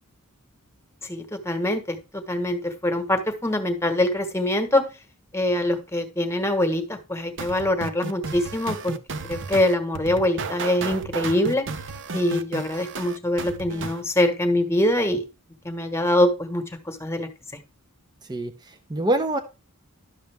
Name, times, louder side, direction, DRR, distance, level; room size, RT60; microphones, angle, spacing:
voice 1, 1.0-4.8 5.3-8.9 9.3-11.7 12.1-15.2 15.6-17.3, left 1 dB, 10° left, 1.3 m, -24 dB
sound 1, 7.4-14.0, right 4 dB, 60° right, 0.8 m, -33 dB
voice 2, 18.2-19.4, right 1 dB, 20° right, 0.7 m, -26 dB
12.0 x 6.6 x 3.5 m
head